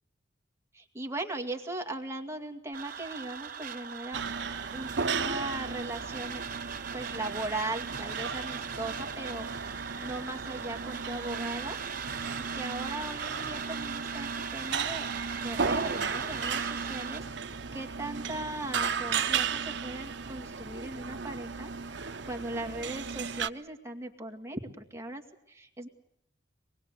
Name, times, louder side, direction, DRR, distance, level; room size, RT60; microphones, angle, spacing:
voice 1, 0.7-4.4 4.7-6.4 6.9-11.8 12.5-15.1 15.4-25.2 25.5-25.9, right 2 dB, 15° right, 2 dB, 2.2 m, -38 dB
sound 1, 2.7-17.2, right 7 dB, 45° right, 2.9 m, -40 dB
sound 2, 4.1-23.5, right 5 dB, 65° right, 0.9 m, -35 dB
25.5 x 20.5 x 8.3 m, 0.81 s
head